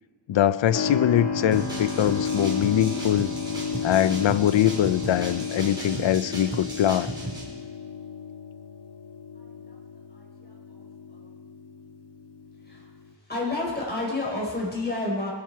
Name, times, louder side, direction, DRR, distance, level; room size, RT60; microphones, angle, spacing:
voice 1, 0.3-3.3 3.8-7.1, left 11 dB, 90° left, 16 dB, 0.6 m, -22 dB
Keyboard (musical), 0.7-13.1, left 5 dB, 65° left, 1.9 m, -33 dB
sound 1, 1.5-7.4, right 1 dB, 10° right, 4.2 m, -36 dB
voice 2, 13.3-15.3, left 2 dB, 20° left, -3 dB, 5.0 m, -29 dB
23.0 x 11.5 x 4.7 m, 1.4 s
wide cardioid pair, 120°, 44 cm